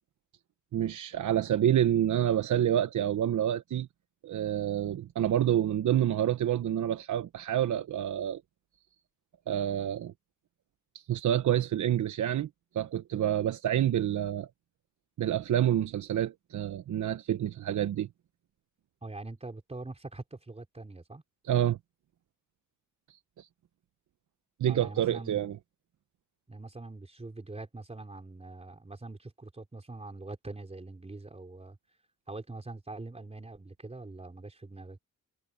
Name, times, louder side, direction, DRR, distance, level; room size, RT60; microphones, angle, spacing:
voice 1, 0.7-3.9 4.2-8.4 9.5-10.1 10.9-12.5 12.7-14.5 15.2-18.1 21.5-21.8 23.1-23.5 24.6-25.6, right 11 dB, 70° right, 1.0 m, -28 dB
voice 2, 19.0-21.2 24.7-25.5 26.5-32.0 32.3-35.0, right 2 dB, 20° right, 4.1 m, -43 dB
cardioid pair, 95°, 31 cm